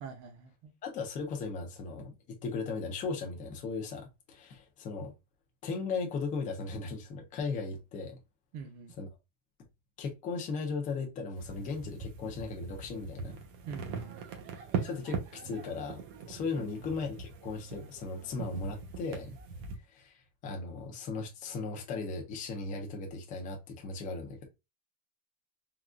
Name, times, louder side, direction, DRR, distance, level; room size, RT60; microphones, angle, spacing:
voice 1, 0.0-0.7 8.5-8.9 13.7-14.2 16.5-16.8, right 6 dB, 40° right, 0.6 m, -45 dB
voice 2, 0.8-2.1 2.4-5.1 5.6-8.2 9.0-9.1 10.0-13.4 14.8-16.0 16.3-19.4 19.9-20.1 20.4-24.5, left 4 dB, 20° left, 0.3 m, -37 dB
sound 1, 11.4-19.8, right 5 dB, 70° right, 1.0 m, -41 dB
3.7 x 2.1 x 2.3 m
cardioid pair, 160°, 48 cm